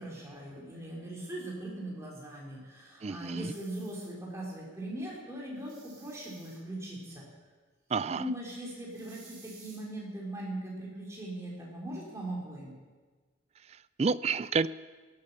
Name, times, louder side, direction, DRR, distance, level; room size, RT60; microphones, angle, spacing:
voice 1, 0.0-7.3 8.1-12.7, right 1 dB, 15° right, -3 dB, 3.8 m, -40 dB
voice 2, 3.0-3.5 7.9-8.3 13.7-14.7, right 5 dB, 30° right, 17 dB, 0.3 m, -30 dB
sound 1, 3.4-4.1 5.6-6.6 8.9-9.8, right 4 dB, 75° right, 5.7 m, -56 dB
17.5 x 8.6 x 6.8 m, 1.4 s
head